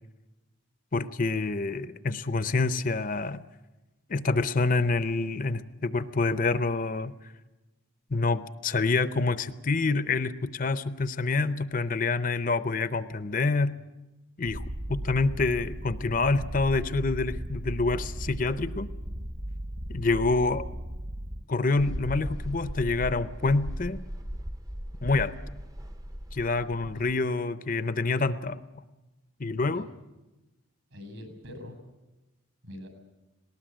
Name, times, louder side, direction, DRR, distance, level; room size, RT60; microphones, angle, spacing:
voice 1, 0.9-3.4 4.1-7.3 8.1-13.8 14.4-18.9 19.9-20.7 21.5-24.0 25.0-25.3 26.3-28.6 29.4-29.9, left 3 dB, 40° left, 13 dB, 0.6 m, -27 dB
Purr, 14.4-21.4, right 1 dB, 40° right, 1.0 m, -36 dB
Mechanical fan, 21.8-27.2, equal, 15° right, 0.7 m, -37 dB
voice 2, 30.9-31.8 32.6-32.9, left 1 dB, 70° right, 7 dB, 6.8 m, -44 dB
19.0 x 19.0 x 9.0 m, 1.1 s
head